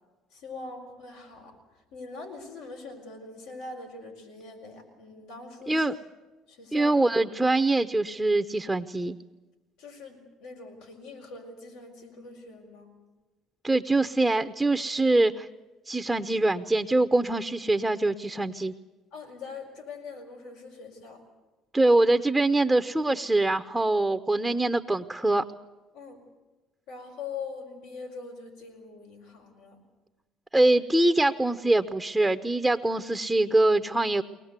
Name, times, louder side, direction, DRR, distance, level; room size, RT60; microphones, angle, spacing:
voice 1, 0.3-1.5 1.9-5.9 6.5-6.9 9.8-12.9 19.1-21.2 25.9-26.2 26.9-29.8, left 4 dB, 85° left, 1 dB, 4.9 m, -42 dB
voice 2, 5.7-6.0 6.7-9.2 13.6-15.5 15.9-18.7 21.7-25.4 30.5-34.2, right 2 dB, 5° right, 9 dB, 0.8 m, -24 dB
23.0 x 19.5 x 8.2 m, 1.2 s
supercardioid pair, 90°, 0 cm